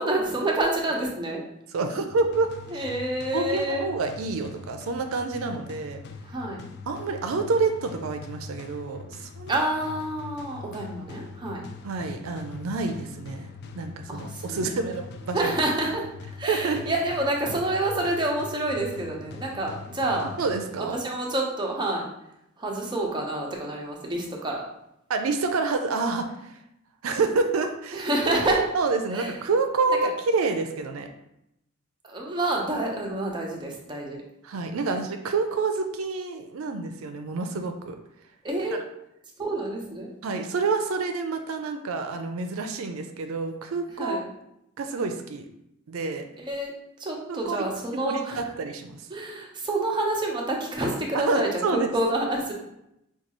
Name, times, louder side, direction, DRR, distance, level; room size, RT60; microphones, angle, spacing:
voice 1, 0.0-1.4 2.7-3.8 6.2-6.6 9.5-11.6 14.1-14.8 15.3-16.0 16.4-20.3 20.8-22.0 22.6-24.6 27.9-28.7 29.1-29.3 29.9-30.1 32.0-34.2 34.9-35.0 38.4-38.8 39.4-40.1 44.0-44.2 46.4-46.7 47.0-48.4 49.1-52.5, right 1 dB, 20° right, -1 dB, 0.7 m, -28 dB
voice 2, 1.7-2.8 3.3-6.0 6.9-9.5 11.8-13.5 13.7-15.5 16.5-16.8 20.4-21.0 25.1-26.6 27.0-28.1 28.7-31.1 34.4-38.0 40.2-44.3 44.8-45.5 45.9-46.3 47.3-47.6 47.9-49.0 51.1-51.9, right 4 dB, 85° right, 6 dB, 0.4 m, -28 dB
sound 1, 2.1-21.1, left 4 dB, 55° left, 0.3 m, -43 dB
5.2 x 2.3 x 3.0 m, 0.80 s
head